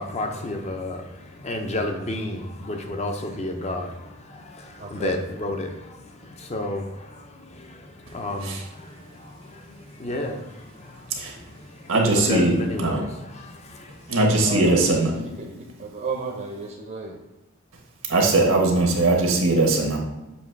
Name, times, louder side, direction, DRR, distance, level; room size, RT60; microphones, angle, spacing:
voice 1, 0.0-14.3, left 1 dB, 30° left, 4 dB, 0.6 m, -32 dB
voice 2, 4.8-5.1 14.4-17.2, right 3 dB, 45° right, 1 dB, 0.7 m, -32 dB
voice 3, 11.9-13.0 14.1-15.1 18.1-20.0, right 2 dB, 85° right, 0 dB, 1.3 m, -20 dB
7.1 x 2.9 x 4.6 m, 0.98 s
head